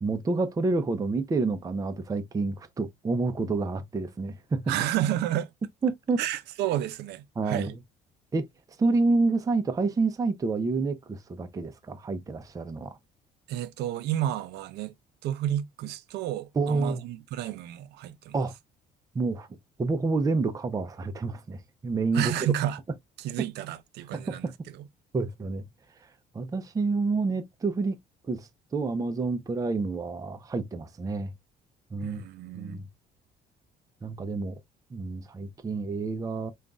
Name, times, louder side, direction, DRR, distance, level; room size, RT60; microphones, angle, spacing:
voice 1, 0.0-4.6 5.8-6.2 7.4-7.8 8.3-8.5 8.8-13.0 16.6-17.0 18.3-18.5 19.1-19.5 19.8-22.5 24.1-24.5 25.1-25.6 26.3-28.0 28.3-31.3 31.9-32.2 32.6-32.9 34.0-34.6 34.9-36.5, right 3 dB, 20° right, 0.6 m, -28 dB
voice 2, 4.7-5.5 6.2-7.7 13.5-14.9 15.2-18.3 22.1-22.8 23.2-24.8 32.0-32.8, right 12 dB, 80° right, 0.6 m, -31 dB
5.1 x 2.3 x 2.4 m
cardioid pair, 110°, 17 cm